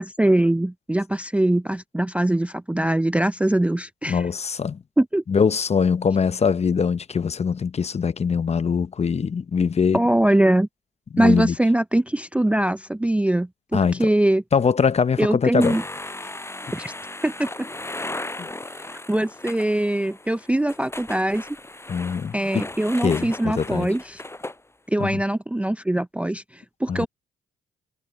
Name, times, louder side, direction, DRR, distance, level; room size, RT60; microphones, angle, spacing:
voice 1, 0.0-4.3 5.0-5.2 9.9-10.7 11.2-14.4 15.2-15.8 16.7-16.9 17.2-17.7 19.1-21.5 22.3-24.2 24.9-27.1, right 1 dB, 5° right, 0.5 m, -22 dB
voice 2, 4.1-4.8 5.3-10.0 11.1-11.5 13.7-14.1 14.5-15.8 18.4-18.5 21.9-22.7 23.0-23.9 25.0-25.2 26.9-27.1, left 6 dB, 30° left, 0.8 m, -22 dB
sound 1, 15.6-24.6, left 2 dB, 15° left, 7.3 m, -36 dB
cardioid pair, 90°, 20 cm